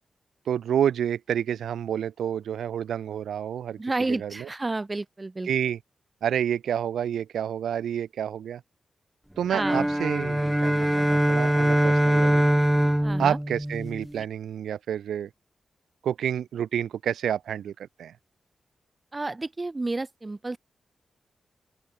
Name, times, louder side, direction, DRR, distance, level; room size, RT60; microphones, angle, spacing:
voice 1, 0.5-3.8 4.1-4.5 5.4-5.8 6.2-8.6 9.4-12.4 13.2-15.3 16.0-18.1, right 9 dB, 80° right, 7.3 m, -29 dB
voice 2, 3.8-5.5 9.5-9.9 13.0-13.4 19.1-20.6, right 2 dB, 35° right, 4.7 m, -30 dB
sound 1, 9.5-14.2, equal, 5° right, 5.9 m, -23 dB
open air
supercardioid pair, 40°, 0 cm